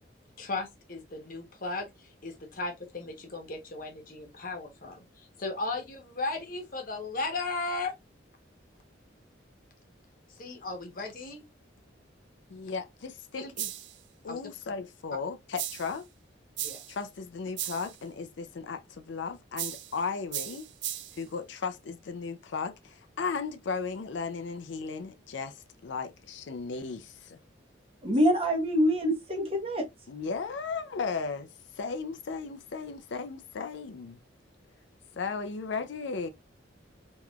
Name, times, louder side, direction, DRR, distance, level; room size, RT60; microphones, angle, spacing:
voice 1, 0.4-7.9 10.3-11.4 13.4-13.5 14.3-14.4 16.6-16.8, left 3 dB, 45° left, 1.0 m, -36 dB
voice 2, 12.5-13.7 14.2-16.1 16.9-20.7 21.1-27.4 30.1-31.5 31.7-34.2 35.2-36.3, left 5 dB, 70° left, 0.4 m, -36 dB
sound 1, 13.6-14.0 15.6-16.0 16.6-17.0 17.6-18.0 19.6-20.0 20.3-21.2, right 12 dB, 65° right, 0.4 m, -36 dB
voice 3, 28.0-29.9, equal, 30° right, 0.9 m, -25 dB
3.6 x 3.0 x 2.3 m
head